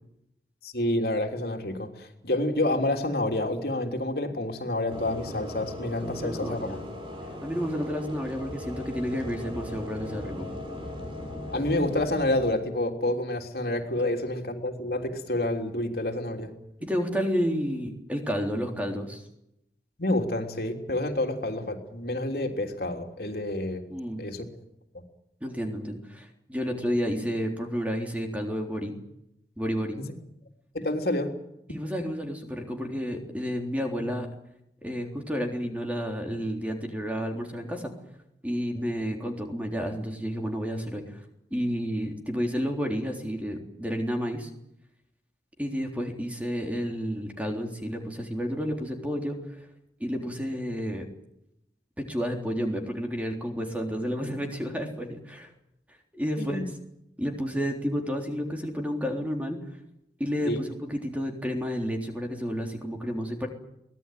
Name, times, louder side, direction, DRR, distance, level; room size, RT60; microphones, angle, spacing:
voice 1, 0.6-6.8 11.5-16.5 20.0-23.8 24.2-24.4 30.0-30.1 30.7-31.3 38.7-38.8 56.4-56.6 60.4-60.6, left 1 dB, 60° left, 4 dB, 3.4 m, -28 dB
sound 1, 4.9-12.5, left 1 dB, 30° right, 5.9 m, -38 dB
voice 2, 6.0-6.8 7.4-10.5 16.8-19.2 23.9-24.2 25.4-28.9 29.6-30.0 31.7-34.3 34.8-37.9 38.4-41.2 41.5-44.5 45.6-49.4 50.0-51.1 52.0-55.5 56.1-56.7 57.2-59.6 60.2-63.5, equal, 10° right, 3 dB, 3.6 m, -31 dB
23.5 x 18.5 x 9.4 m, 0.81 s
head